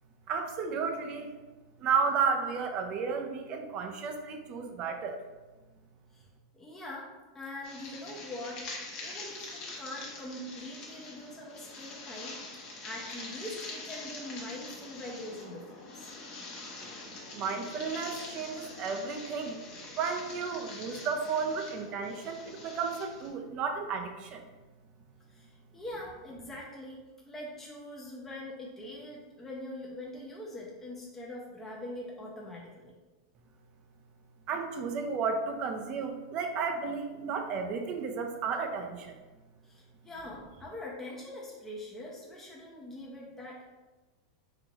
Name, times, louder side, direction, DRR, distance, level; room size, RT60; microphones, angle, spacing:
voice 1, 0.3-1.4 1.8-5.2 17.3-19.6 20.0-24.4 34.5-39.2, right 5 dB, 40° right, 5 dB, 0.5 m, -33 dB
voice 2, 6.5-8.7 9.0-15.7 15.9-16.1 25.3-32.9 39.6-43.6, left 1 dB, 10° left, -4 dB, 0.7 m, -43 dB
sound 1, 7.6-23.3, left 3 dB, 40° left, 1.0 m, -44 dB
3.9 x 2.8 x 2.9 m, 1.2 s
hypercardioid pair, 110°, 2 cm